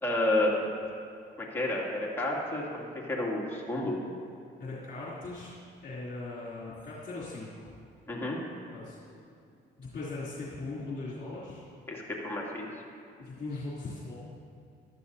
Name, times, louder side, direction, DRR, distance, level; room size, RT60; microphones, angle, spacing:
voice 1, 0.0-0.7 1.4-4.0 8.1-8.4 11.9-12.8, left 1 dB, 10° left, -4 dB, 2.5 m, -30 dB
voice 2, 4.6-5.5 5.8-7.8 8.7-9.0 9.8-11.6 13.2-14.1, left 3 dB, 50° left, -8 dB, 3.1 m, -39 dB
15.5 x 12.5 x 2.8 m, 2.4 s
cardioid pair, 90°, 20 cm